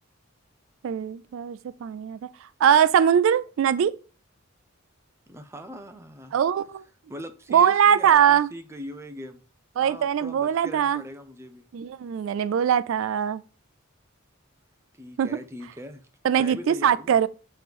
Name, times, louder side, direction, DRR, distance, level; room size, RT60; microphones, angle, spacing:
voice 1, 0.8-2.3 2.6-3.9 6.3-6.8 7.5-8.5 9.8-11.0 11.7-13.4 15.2-15.3 16.2-17.3, right 8 dB, 70° right, 0.3 m, -21 dB
voice 2, 5.3-6.3 7.1-9.4 9.8-11.6 15.0-16.1 16.3-17.1, equal, 15° right, 0.6 m, -40 dB
7.7 x 3.1 x 5.2 m
head